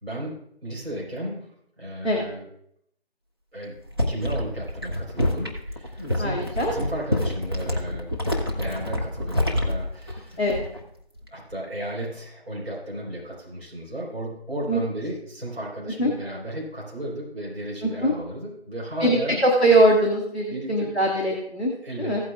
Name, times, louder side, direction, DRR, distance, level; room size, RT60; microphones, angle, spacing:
voice 1, 0.0-1.5 1.8-2.5 3.5-3.8 4.1-6.4 6.7-8.2 8.5-10.4 11.3-19.4 20.5-20.9 21.8-22.2, right 1 dB, 70° right, -4 dB, 4.4 m, -34 dB
sound 1, 3.7-10.9 11.2-11.5, left 1 dB, 25° right, 0.8 m, -27 dB
voice 2, 6.2-6.7 10.4-10.6 14.7-14.8 16.0-16.1 17.8-18.1 19.0-21.7 22.0-22.2, right 1 dB, 10° left, -13 dB, 0.9 m, -21 dB
16.0 x 8.8 x 2.4 m, 0.71 s
figure-of-eight pair, 165°, 32 cm